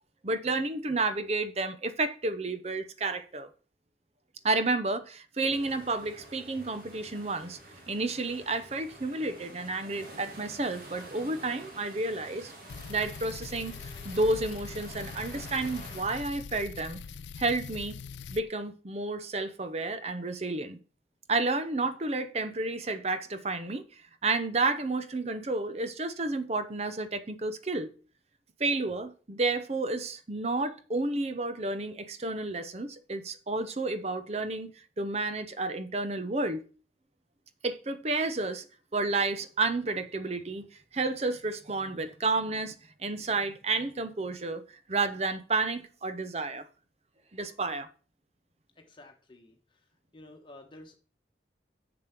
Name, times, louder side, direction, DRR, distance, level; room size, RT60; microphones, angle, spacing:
voice 1, 0.2-3.5 4.4-7.6 7.9-12.5 12.9-17.0 17.4-18.0 18.3-20.8 21.3-27.9 28.6-36.6 37.6-38.6 38.9-40.7 40.9-42.7 43.0-44.6 44.9-46.7 47.3-47.9, right 3 dB, 35° right, 0.7 m, -31 dB
sound 1, 5.4-16.0, right 1 dB, 50° right, 2.2 m, -48 dB
sound 2, 12.7-18.4, left 5 dB, 75° left, 0.4 m, -43 dB
voice 2, 48.8-51.0, left 2 dB, 25° left, 1.3 m, -52 dB
7.1 x 6.9 x 6.0 m
head